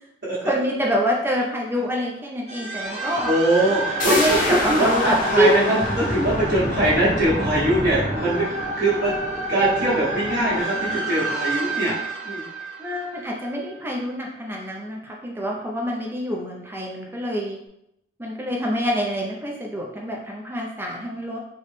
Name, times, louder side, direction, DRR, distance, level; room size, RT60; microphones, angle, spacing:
voice 1, 0.4-3.3 4.1-5.8 12.8-17.6 18.2-21.4, equal, 10° right, -1 dB, 0.4 m, -26 dB
sound 1, 2.5-13.7, right 1 dB, 35° right, 0.9 m, -28 dB
voice 2, 3.2-9.2 9.5-12.0 12.2-12.4, right 1 dB, 55° right, -13 dB, 1.2 m, -22 dB
Crackin Noise Hit, 4.0-9.5 9.8-9.9, left 2 dB, 50° left, 0.5 m, -30 dB
4.0 x 2.1 x 3.2 m, 0.80 s
head